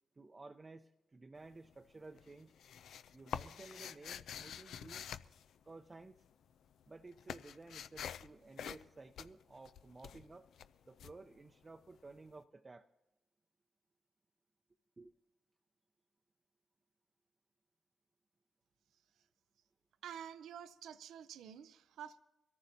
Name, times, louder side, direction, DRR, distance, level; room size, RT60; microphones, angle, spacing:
voice 1, 0.2-2.5 3.1-5.0 5.7-6.2 6.9-10.5 10.9-12.9 15.0-15.1, right 3 dB, 35° right, 5 dB, 0.6 m, -54 dB
sound 1, 1.4-1.9 2.2-6.2 6.5-12.1, left 8 dB, 75° left, 0.4 m, -47 dB
voice 2, 20.0-22.2, right 9 dB, 80° right, 13 dB, 0.4 m, -49 dB
23.0 x 14.0 x 2.7 m, 0.99 s
hypercardioid pair, 40°, 0 cm